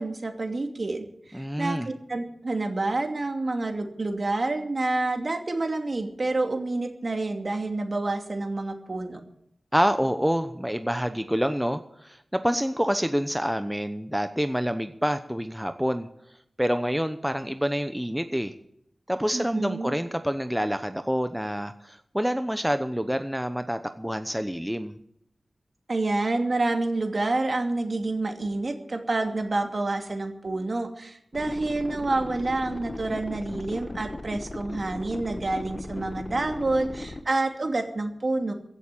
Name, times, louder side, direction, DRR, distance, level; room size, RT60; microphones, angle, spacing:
voice 1, 0.0-9.2 19.3-20.0 25.9-38.5, right 2 dB, 50° right, 4 dB, 2.6 m, -28 dB
voice 2, 1.3-1.9 9.7-16.1 16.6-18.5 19.1-24.9, equal, 5° right, 9 dB, 0.9 m, -27 dB
sound 1, 31.3-37.2, left 2 dB, 35° left, 1.1 m, -37 dB
16.0 x 8.3 x 8.9 m, 0.73 s
cardioid pair, 55°, 0 cm